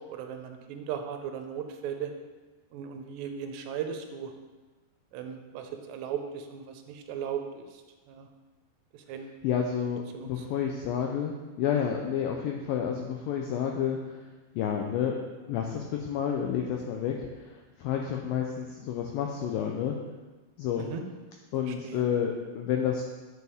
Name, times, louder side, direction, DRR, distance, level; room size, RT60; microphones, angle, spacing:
voice 1, 0.1-2.1 2.7-4.3 5.1-7.7 8.1-8.3 9.1-9.4 10.1-10.4 20.8-21.0 21.6-22.1, right 8 dB, 85° right, 5 dB, 2.9 m, -37 dB
voice 2, 9.4-14.2 14.6-15.2 15.5-20.0 20.6-20.9 21.5-23.0, left 8 dB, 85° left, 2 dB, 2.0 m, -30 dB
10.5 x 6.9 x 3.5 m, 1.2 s
omnidirectional pair, 4.8 m